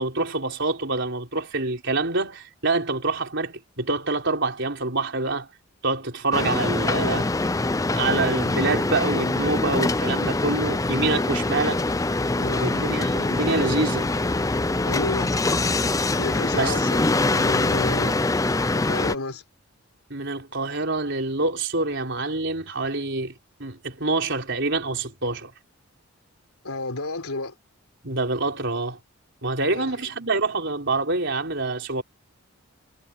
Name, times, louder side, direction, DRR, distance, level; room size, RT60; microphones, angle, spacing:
voice 1, 0.0-5.5 5.8-7.3 7.9-11.8 12.6-14.1 16.5-16.8 20.1-23.3 23.6-25.5 28.0-29.0 29.4-32.0, right 3 dB, 55° right, 4.5 m, -26 dB
sound 1, 6.3-19.1, left 2 dB, 15° left, 0.5 m, -24 dB
voice 2, 6.8-7.4 12.4-12.8 14.8-15.4 16.2-18.2 18.7-19.4 26.6-27.5 29.7-29.9, left 2 dB, 85° left, 3.8 m, -31 dB
head